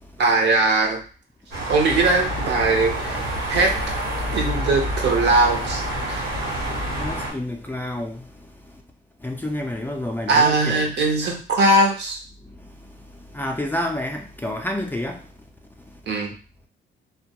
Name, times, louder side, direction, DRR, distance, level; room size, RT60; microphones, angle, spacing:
voice 1, 0.2-1.0 1.7-3.7 4.3-5.8 6.1-6.2 10.3-12.2 16.1-16.3, right 2 dB, 60° right, 0.7 m, -20 dB
sound 1, 1.5-7.3, equal, 85° right, 1.1 m, -27 dB
voice 2, 6.9-8.2 9.2-10.9 13.3-15.2, left 1 dB, 10° left, 0.3 m, -29 dB
2.2 x 2.1 x 2.8 m
cardioid pair, 90°, 20 cm